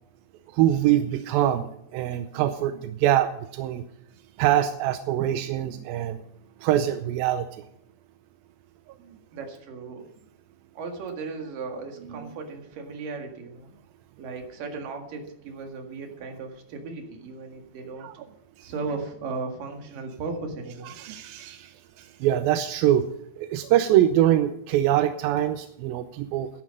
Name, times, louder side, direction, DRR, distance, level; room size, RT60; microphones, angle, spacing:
voice 1, 0.5-1.7 1.9-3.8 4.4-6.2 6.6-7.5 12.2-12.3 18.0-18.1 21.0-23.1 23.4-26.5, right 12 dB, 85° right, 9 dB, 2.5 m, -23 dB
voice 2, 9.3-10.1 10.7-13.7 14.2-18.1 18.6-20.9, right 4 dB, 70° right, 3 dB, 3.5 m, -36 dB
14.0 x 11.0 x 5.3 m, 0.75 s
omnidirectional pair, 4.1 m